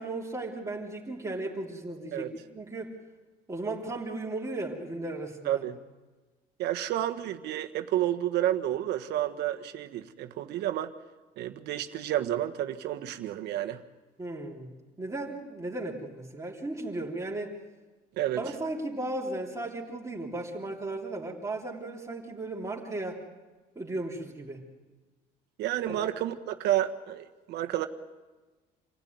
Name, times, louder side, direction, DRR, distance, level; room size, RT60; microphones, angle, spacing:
voice 1, 0.0-3.0 3.5-5.6 14.2-17.5 18.4-23.2 23.8-24.6 25.9-26.1, right 2 dB, 20° right, -3 dB, 3.4 m, -36 dB
voice 2, 5.4-5.8 6.6-10.9 11.4-13.8 18.2-18.4 25.6-27.9, right 12 dB, 80° right, 8 dB, 1.4 m, -30 dB
27.5 x 16.0 x 9.5 m, 1.2 s
cardioid pair, 110°, 17 cm